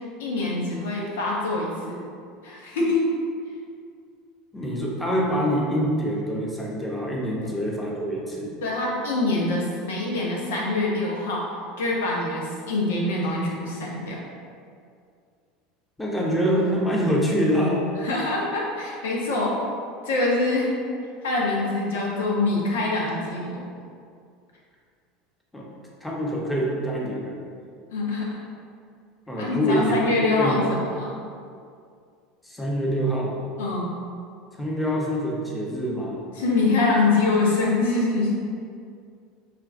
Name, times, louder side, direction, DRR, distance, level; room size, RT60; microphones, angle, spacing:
voice 1, 0.0-2.0 2.4-3.1 7.4-7.5 8.6-11.5 11.8-14.2 18.0-19.6 20.0-20.7 21.2-23.6 27.9-28.4 29.4-31.2 33.6-33.9 36.3-38.4, left 2 dB, 75° left, -3 dB, 0.8 m, -24 dB
voice 2, 4.5-8.5 16.0-17.8 25.5-25.7 26.0-27.4 29.3-30.6 32.4-33.4 34.6-36.2, equal, 10° left, -4 dB, 0.9 m, -25 dB
5.5 x 2.5 x 2.5 m, 2.3 s
hypercardioid pair, 80°, 0 cm